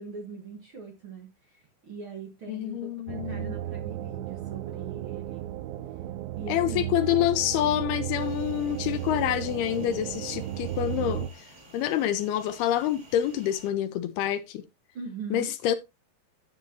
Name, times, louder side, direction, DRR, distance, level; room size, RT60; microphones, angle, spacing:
voice 1, 0.0-5.5 6.4-7.1 14.9-15.5, right 5 dB, 55° right, 1.4 m, -41 dB
voice 2, 2.5-3.6 6.5-11.5 11.7-14.6 15.3-15.8, left 12 dB, 80° left, 2.5 m, -27 dB
sound 1, 3.1-11.3, right 12 dB, 80° right, 2.4 m, -34 dB
sound 2, 8.2-13.7, right 1 dB, 25° right, 2.7 m, -52 dB
10.5 x 8.5 x 2.8 m
omnidirectional pair, 4.6 m